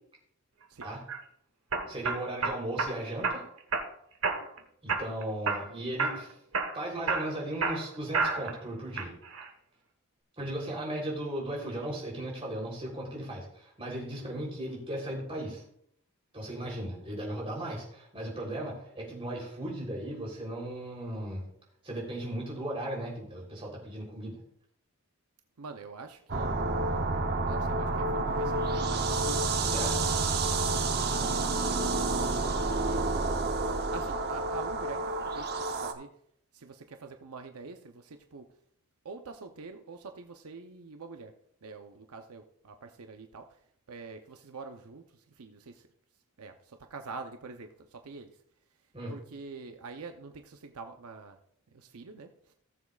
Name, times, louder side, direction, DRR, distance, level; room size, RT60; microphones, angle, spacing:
sound 1, 0.8-1.2 1.7-2.9 3.2-3.9 4.2-4.6 4.9-5.7 6.0-6.2 6.5-8.6 9.0-9.5, right 4 dB, 65° right, 1.4 m, -30 dB
voice 1, 1.9-3.4 4.8-6.3 6.7-9.1 10.4-15.6 16.3-21.5 21.8-24.4 29.7-30.0 48.9-49.1, right 1 dB, 25° right, -2 dB, 3.5 m, -36 dB
voice 2, 25.6-26.6 27.5-29.6 30.6-33.3 33.9-36.1 36.5-38.5 39.0-41.3 41.6-43.5 43.9-45.8 46.4-48.3 49.1-51.4 51.7-52.5, right 4 dB, 80° right, 5 dB, 0.7 m, -46 dB
sound 2, 26.3-35.9, right 3 dB, 45° right, 0.8 m, -29 dB
18.0 x 7.2 x 2.4 m, 0.68 s
head